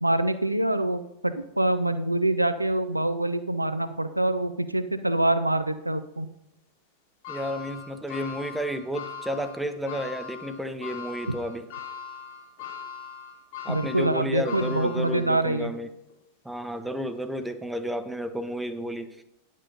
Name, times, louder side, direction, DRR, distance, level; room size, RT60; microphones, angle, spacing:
voice 1, 0.0-6.3 13.7-15.7, right 1 dB, 85° right, 11 dB, 0.5 m, -25 dB
sound 1, 7.2-15.6 16.1-16.2 17.4-17.5, left 7 dB, 55° left, 2.8 m, -40 dB
voice 2, 7.3-11.7 13.6-15.9 16.4-19.2, equal, 5° right, 9 dB, 0.8 m, -32 dB
10.0 x 6.4 x 5.3 m, 0.86 s
figure-of-eight pair, 90°, 0 cm